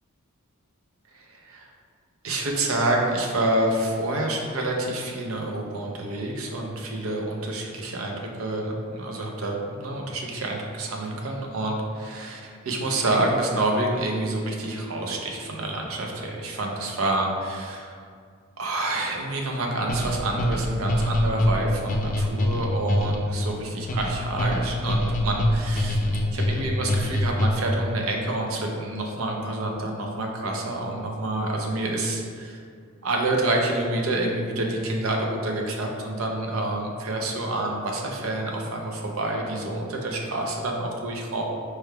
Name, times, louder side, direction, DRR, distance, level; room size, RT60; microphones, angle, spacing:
voice 1, 1.3-1.6 2.2-18.0 18.6-26.0 26.3-32.6 33.0-41.4, right 2 dB, 75° right, 0 dB, 0.6 m, -28 dB
sound 1, 19.9-27.8, left 1 dB, 35° left, 0.4 m, -25 dB
4.5 x 3.3 x 2.2 m, 2.1 s
head